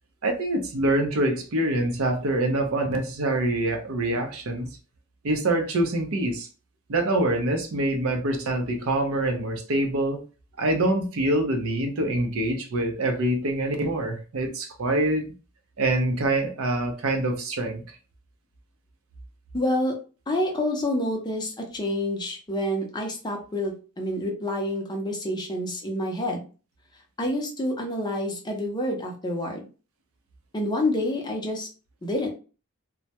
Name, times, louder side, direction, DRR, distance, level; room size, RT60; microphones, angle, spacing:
voice 1, 0.2-4.7 5.2-6.5 6.9-10.2 10.6-15.2 15.8-17.8, right 1 dB, 70° right, 4 dB, 0.6 m, -25 dB
voice 2, 19.5-20.0 20.3-26.4 27.2-29.7 30.5-31.7 32.0-32.3, left 1 dB, 20° left, 2 dB, 0.5 m, -28 dB
2.2 x 2.0 x 2.8 m, 0.35 s
head